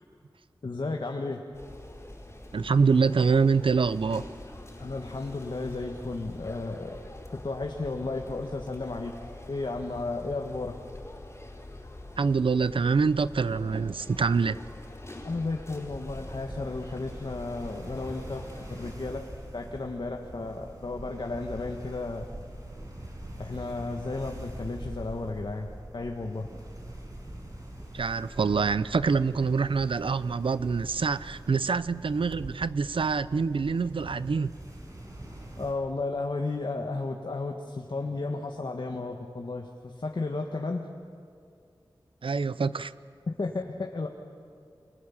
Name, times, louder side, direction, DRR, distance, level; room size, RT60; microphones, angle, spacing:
voice 1, 0.6-1.4 4.8-7.0 7.3-10.7 15.2-18.4 18.7-19.2 19.5-22.3 23.4-26.5 35.6-40.9 43.3-44.1, left 3 dB, 65° left, 1.6 m, -33 dB
sound 1, 1.5-18.9, left 1 dB, 30° left, 4.5 m, -45 dB
voice 2, 2.5-4.3 12.2-14.6 27.9-34.5 42.2-42.9, right 5 dB, 80° right, 0.6 m, -25 dB
sound 2, 15.8-35.7, right 1 dB, 40° right, 5.7 m, -43 dB
29.0 x 24.5 x 7.3 m
wide cardioid pair, 70°, 9 cm